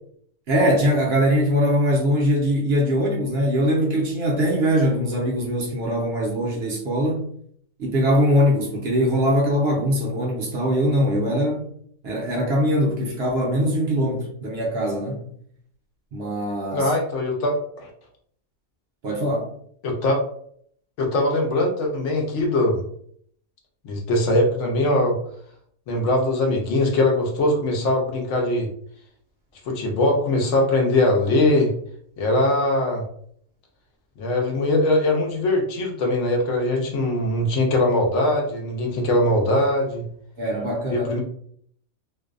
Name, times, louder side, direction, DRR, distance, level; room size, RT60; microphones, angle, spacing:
voice 1, 0.5-7.3 7.8-11.7 12.0-15.3 16.1-16.9 19.0-19.5 40.4-41.1, equal, 60° right, 0.7 m, -22 dB
voice 2, 16.7-17.9 19.8-20.2 21.0-22.8 23.8-25.2 25.9-28.7 29.7-31.7 32.2-33.0 34.2-40.0 40.9-41.2, left 1 dB, 70° left, 0.8 m, -21 dB
2.6 x 2.1 x 2.4 m
omnidirectional pair, 1.4 m